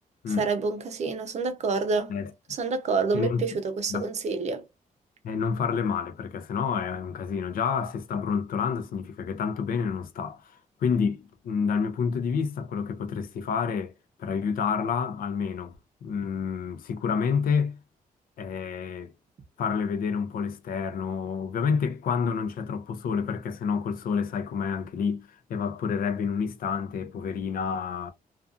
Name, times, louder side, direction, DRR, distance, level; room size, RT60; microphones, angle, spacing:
voice 1, 0.4-2.1 2.5-4.6, right 4 dB, 50° right, 0.6 m, -28 dB
voice 2, 5.2-13.9 14.2-15.7 16.0-17.8 18.4-19.1 19.6-28.1, left 6 dB, 75° left, 0.5 m, -29 dB
2.6 x 2.3 x 2.3 m
wide cardioid pair, 140°, 15 cm